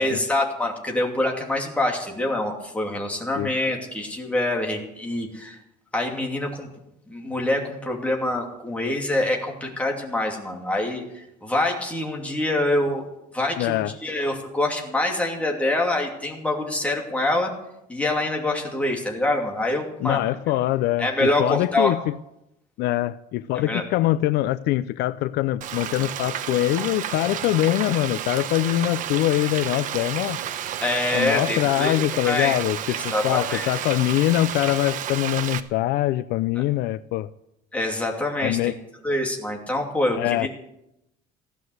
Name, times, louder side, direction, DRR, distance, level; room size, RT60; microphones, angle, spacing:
voice 1, 0.0-5.6 5.9-6.7 7.1-13.0 13.3-17.5 17.9-20.3 21.0-21.9 23.6-23.8 30.8-32.0 32.2-32.5 32.9-33.7 37.7-38.7 39.0-40.5, left 1 dB, 10° left, 0 dB, 2.7 m, -25 dB
voice 2, 13.6-13.9 20.0-22.1 22.8-30.4 31.1-37.3 38.4-38.7 40.2-40.5, left 15 dB, 70° left, 15 dB, 0.5 m, -23 dB
Frying (food), 25.6-35.6, right 10 dB, 50° right, 1.0 m, -31 dB
16.0 x 11.5 x 7.9 m, 0.85 s
cardioid pair, 165°, 18 cm